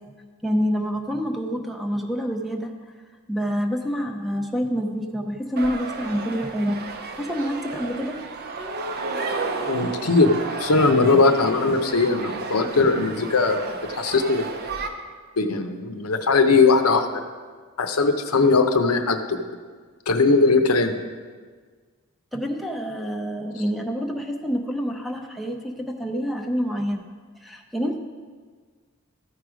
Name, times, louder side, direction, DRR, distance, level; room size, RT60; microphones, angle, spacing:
voice 1, 0.4-2.7 3.3-6.8 7.1-8.2 22.3-27.0 27.4-28.0, equal, ahead, 3 dB, 0.6 m, -27 dB
sound 1, 5.6-14.9, right 4 dB, 45° right, 0.7 m, -32 dB
voice 2, 9.7-10.3 10.6-14.5 15.4-17.1 17.8-19.4 20.1-21.0, left 3 dB, 80° left, 7 dB, 0.7 m, -19 dB
14.0 x 4.8 x 5.0 m, 1.5 s
head